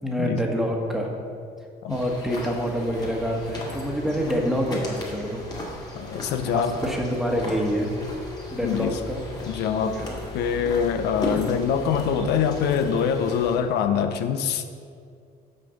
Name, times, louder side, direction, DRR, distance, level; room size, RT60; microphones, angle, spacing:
voice 1, 0.0-1.1 1.9-5.5 6.0-6.1 6.4-7.9 8.5-9.5 9.8-10.2, equal, ahead, 0 dB, 1.3 m, -27 dB
sound 1, 1.9-13.6, left 1 dB, 25° left, 2.0 m, -36 dB
voice 2, 5.9-6.8 8.6-9.0 9.5-10.0 10.3-14.7, left 7 dB, 80° left, 9 dB, 0.6 m, -24 dB
6.6 x 5.2 x 6.8 m, 2.2 s
cardioid pair, 110°, 17 cm